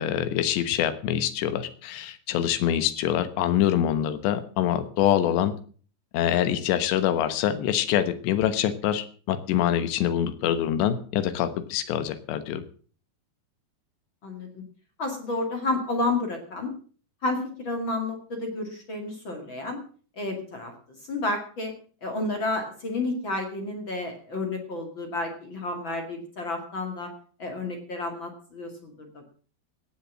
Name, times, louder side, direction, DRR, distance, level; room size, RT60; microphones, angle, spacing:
voice 1, 0.0-5.5 6.1-12.6, left 10 dB, 85° left, 11 dB, 3.4 m, -25 dB
voice 2, 14.2-14.6 15.0-16.7 17.2-19.8 20.2-20.7 21.1-21.7 22.0-27.1 27.4-29.2, left 2 dB, 35° left, 3 dB, 2.2 m, -31 dB
18.0 x 7.4 x 7.3 m, 0.43 s
omnidirectional pair, 4.9 m